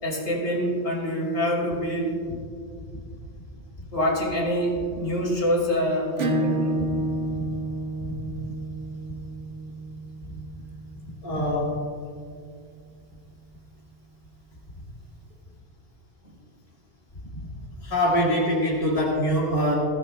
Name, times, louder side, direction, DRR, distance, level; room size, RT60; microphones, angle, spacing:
voice 1, 0.0-2.2 3.9-6.7 16.2-16.3, equal, 70° left, -3 dB, 3.8 m, -26 dB
Acoustic guitar / Strum, 6.2-11.4, right 1 dB, 85° right, 1.3 m, -30 dB
voice 2, 8.0-8.4 11.2-11.8 17.8-19.7, equal, 50° left, -6 dB, 2.0 m, -24 dB
20.5 x 15.5 x 2.2 m, 2.2 s
omnidirectional pair, 1.2 m